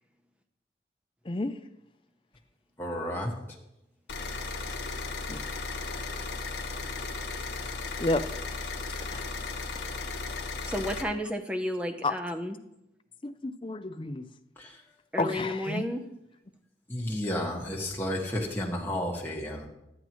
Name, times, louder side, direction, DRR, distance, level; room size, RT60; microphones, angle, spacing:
voice 1, 2.8-3.3 14.6-14.7 16.9-19.7, left 1 dB, 10° left, -3 dB, 1.7 m, -32 dB
sound 1, 4.1-11.0, left 3 dB, 80° left, 1.1 m, -35 dB
voice 2, 10.6-12.6 15.1-16.0, equal, 5° right, 5 dB, 0.7 m, -32 dB
voice 3, 13.2-14.3 15.2-15.8, left 2 dB, 30° left, 8 dB, 0.5 m, -30 dB
12.5 x 9.9 x 3.1 m, 0.86 s
head